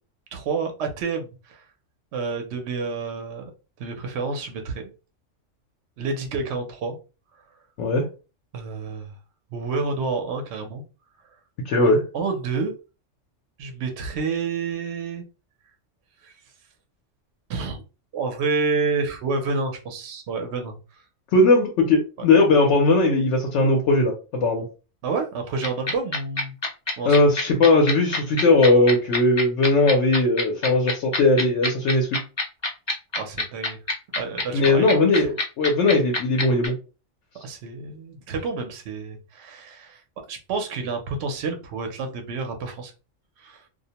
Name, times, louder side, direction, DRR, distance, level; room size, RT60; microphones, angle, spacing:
voice 1, 0.3-1.6 2.1-3.4 3.8-4.9 6.0-7.0 8.5-9.1 9.5-10.8 11.8-12.7 13.6-15.2 16.2-16.3 17.5-17.8 18.1-21.0 25.0-26.5 27.0-27.2 33.2-33.8 34.2-34.9 35.1-35.3 37.4-40.0 40.3-42.9 43.4-43.6, right 4 dB, 65° right, 5 dB, 0.9 m, -29 dB
voice 2, 11.7-12.0 21.3-24.7 27.0-32.1 34.5-36.7, left 2 dB, 75° left, -1 dB, 0.9 m, -19 dB
sound 1, 25.6-36.7, left 2 dB, 35° left, 0.5 m, -25 dB
2.4 x 2.1 x 2.8 m, 0.32 s
omnidirectional pair, 1.3 m